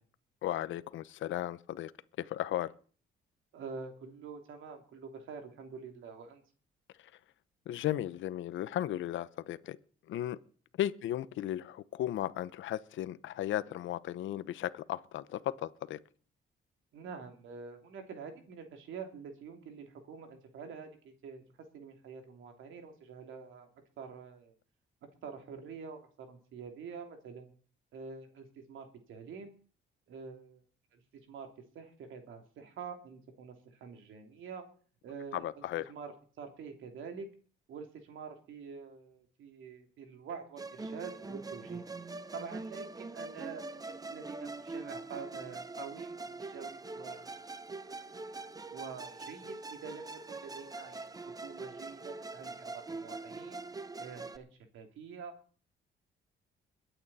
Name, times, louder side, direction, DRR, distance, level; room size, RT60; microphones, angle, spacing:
voice 1, 0.4-1.9 2.2-2.7 7.0-7.1 7.7-9.8 10.1-10.4 10.8-16.0 35.3-35.9, left 12 dB, 75° left, 15 dB, 0.8 m, -35 dB
voice 2, 3.5-6.4 16.9-21.4 21.7-23.7 24.0-24.5 25.2-27.5 27.9-29.5 30.1-30.6 30.9-31.0 31.3-31.5 31.7-34.7 35.0-35.6 35.9-37.3 37.7-41.8 42.3-47.3 48.7-51.2 51.4-53.6 54.0-54.5 54.7-55.3, right 5 dB, 80° right, 4 dB, 3.0 m, -46 dB
Musical instrument, 40.6-54.4, right 3 dB, 20° right, 0.8 m, -43 dB
22.0 x 9.0 x 4.2 m, 0.42 s
cardioid pair, 90°, 20 cm